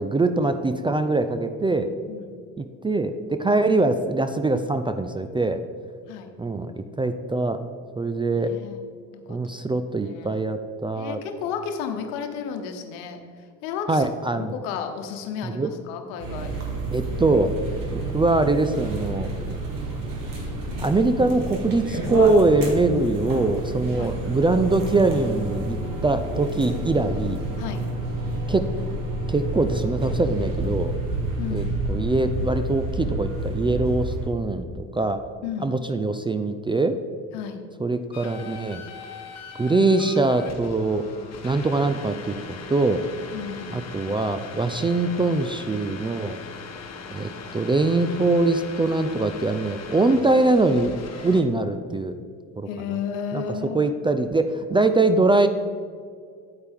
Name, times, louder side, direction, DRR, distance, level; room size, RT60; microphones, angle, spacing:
voice 1, 0.0-1.9 2.6-5.6 6.4-7.6 8.0-8.5 9.3-11.2 13.9-14.5 15.4-15.7 16.9-17.5 17.9-19.3 20.8-27.4 28.5-28.7 29.3-31.0 31.5-35.2 35.6-37.0 37.8-38.8 39.6-41.1 41.4-43.1 43.7-46.4 47.1-50.9 51.2-52.2 52.6-52.7 53.3-53.4 53.7-55.5, right 2 dB, 15° right, 9 dB, 0.4 m, -23 dB
voice 2, 2.1-2.4 6.1-6.3 8.3-8.8 9.1-9.4 10.0-10.4 10.9-13.2 13.6-14.1 14.3-16.5 24.0-24.1 27.6-27.9 31.4-31.7 35.4-35.7 37.3-37.6 43.3-43.8 52.7-53.9, left 7 dB, 75° left, 6 dB, 1.1 m, -33 dB
sound 1, 16.2-34.3, right 1 dB, 55° right, 2.4 m, -29 dB
Singing, 21.0-30.6, right 3 dB, 85° right, 1.1 m, -44 dB
sound 2, 38.1-51.4, left 5 dB, 40° left, 1.2 m, -40 dB
8.7 x 8.7 x 3.6 m, 2.1 s
hypercardioid pair, 70°, 40 cm